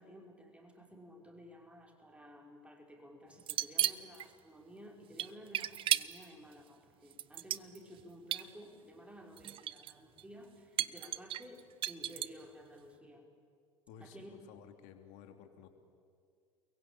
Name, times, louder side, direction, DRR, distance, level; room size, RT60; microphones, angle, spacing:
voice 1, 0.0-13.3 14.0-14.6, equal, 10° right, 2 dB, 5.3 m, -54 dB
sound 1, 3.4-4.3 5.2-6.3 7.1-8.0 8.3-8.4 9.4-9.9 10.2-10.3 10.8-12.4, right 12 dB, 35° right, 0.7 m, -34 dB
voice 2, 13.9-15.7, left 7 dB, 55° left, 7 dB, 2.9 m, -55 dB
29.5 x 22.0 x 9.0 m, 2.2 s
figure-of-eight pair, 70°, 15 cm